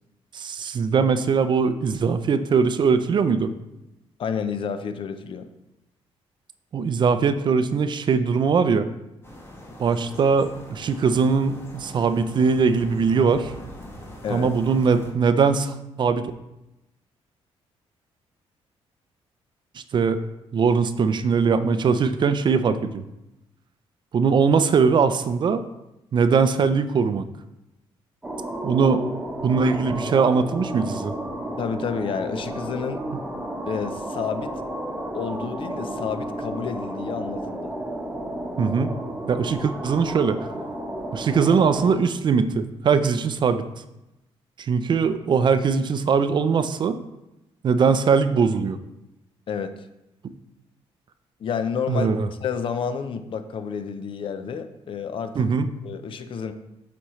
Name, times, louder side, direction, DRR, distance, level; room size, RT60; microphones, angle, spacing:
voice 1, 0.3-3.5 6.7-8.9 9.8-13.5 14.3-16.3 19.9-20.2 20.5-23.0 24.1-25.6 26.1-27.2 28.6-29.0 29.4-31.1 38.6-38.9 39.3-40.5 41.1-43.6 44.6-47.0 47.6-48.8 51.9-52.3 55.4-55.7, right 5 dB, 45° right, 11 dB, 0.5 m, -21 dB
voice 2, 4.2-5.5 14.2-14.5 31.6-33.0 33.7-34.6 35.1-37.7 49.5-49.7 51.4-52.1 52.4-55.5 55.8-56.5, left 6 dB, 55° left, 9 dB, 0.6 m, -30 dB
sound 1, 9.2-15.1, left 1 dB, 25° left, 1.4 m, -42 dB
sound 2, 28.2-41.9, right 1 dB, 10° right, 1.0 m, -32 dB
8.2 x 4.3 x 3.1 m, 0.92 s
cardioid pair, 100°, 11 cm